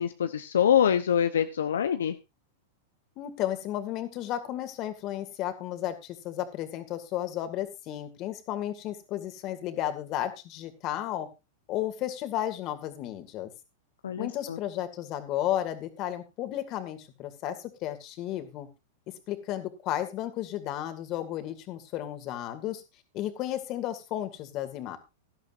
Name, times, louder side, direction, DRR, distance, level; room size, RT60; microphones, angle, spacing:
voice 1, 0.0-2.2 14.0-14.6, left 9 dB, 80° left, 9 dB, 0.8 m, -25 dB
voice 2, 3.2-11.3 11.7-13.5 14.2-18.7 19.3-22.8 23.1-25.0, left 12 dB, 45° left, 8 dB, 2.3 m, -33 dB
17.0 x 11.5 x 2.6 m, 0.24 s
hypercardioid pair, 110°, 0 cm